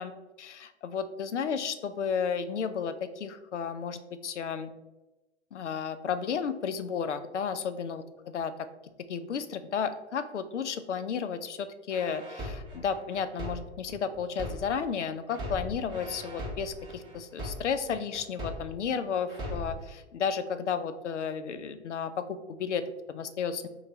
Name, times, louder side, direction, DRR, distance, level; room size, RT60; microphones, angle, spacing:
voice 1, 0.0-4.7 5.5-8.5 9.1-23.7, left 6 dB, 85° left, 11 dB, 0.5 m, -33 dB
sound 1, 11.9-14.9 15.3-18.9 19.3-19.9, left 1 dB, 15° right, 1.0 m, -39 dB
5.7 x 2.3 x 3.1 m, 1.1 s
hypercardioid pair, 115°, 35 cm